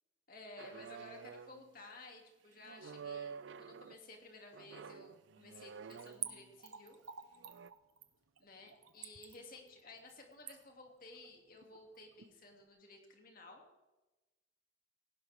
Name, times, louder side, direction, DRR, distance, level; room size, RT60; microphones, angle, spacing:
voice 1, 0.3-7.0 8.4-13.6, left 2 dB, 45° left, 1 dB, 2.6 m, -55 dB
sound 1, 0.6-1.7 2.6-4.0 4.5-6.5 7.4-7.7, right 6 dB, 60° right, 0.4 m, -49 dB
Splash splatter / Trickle dribble, 5.9-12.3 12.6-12.7, right 10 dB, 85° right, 1.2 m, -49 dB
18.5 x 16.0 x 3.6 m, 1.1 s
head